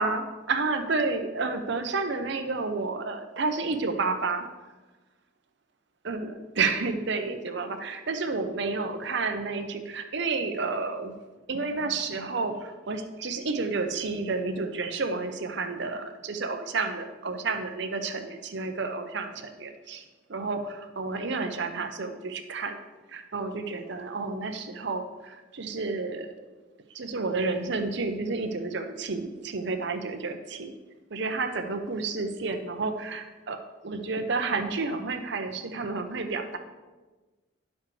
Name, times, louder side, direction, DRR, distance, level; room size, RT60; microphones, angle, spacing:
voice 1, 0.0-4.5 6.0-11.1 11.5-20.0 20.3-22.8 23.1-26.3 26.9-30.7 31.1-36.6, right 3 dB, 55° right, 6 dB, 0.7 m, -30 dB
10.5 x 7.2 x 3.3 m, 1.3 s
head